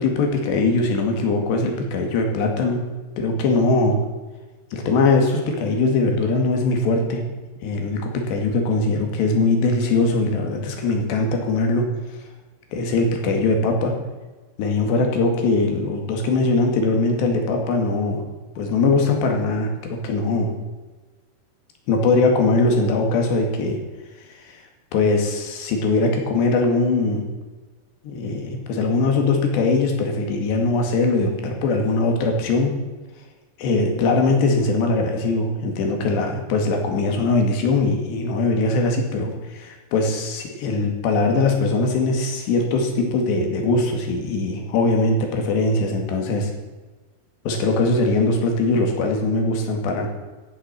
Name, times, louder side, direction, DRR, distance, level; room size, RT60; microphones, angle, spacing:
voice 1, 0.0-2.8 3.2-4.0 4.7-7.2 7.6-11.9 12.7-13.9 14.6-18.2 18.6-20.5 21.9-23.8 24.5-24.6 24.9-27.2 28.0-32.7 33.6-46.5 47.5-50.1, left 3 dB, 85° left, 3 dB, 4.4 m, -21 dB
14.0 x 10.0 x 7.5 m, 1.3 s
omnidirectional pair, 4.8 m